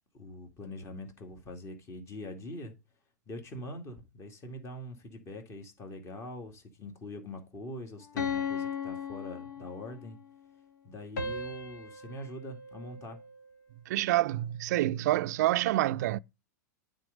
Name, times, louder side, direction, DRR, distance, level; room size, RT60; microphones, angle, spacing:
voice 1, 0.1-2.7 3.3-10.2 10.8-13.2, left 1 dB, 30° left, 2.2 m, -43 dB
sound 1, 8.2-10.1 11.2-13.5, left 5 dB, 75° left, 1.8 m, -37 dB
voice 2, 13.9-16.2, right 15 dB, 65° right, 0.4 m, -27 dB
8.9 x 3.9 x 5.1 m
hypercardioid pair, 120°, 10 cm